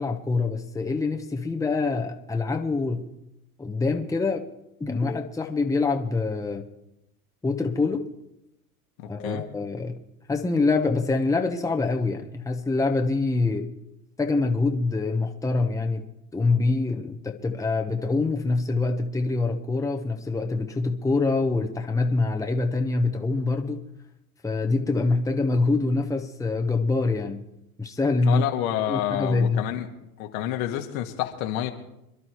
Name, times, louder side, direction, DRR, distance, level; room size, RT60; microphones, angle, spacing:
voice 1, 0.0-3.1 3.6-4.5 4.8-6.7 7.4-8.1 9.1-10.0 10.3-13.7 14.2-16.0 16.3-23.8 24.4-27.4 27.8-28.4 28.9-29.6, left 3 dB, 5° left, 1.1 m, -25 dB
voice 2, 28.2-29.9 30.2-31.7, left 12 dB, 70° left, 2.0 m, -28 dB
26.0 x 11.5 x 3.2 m
hypercardioid pair, 90°, 44 cm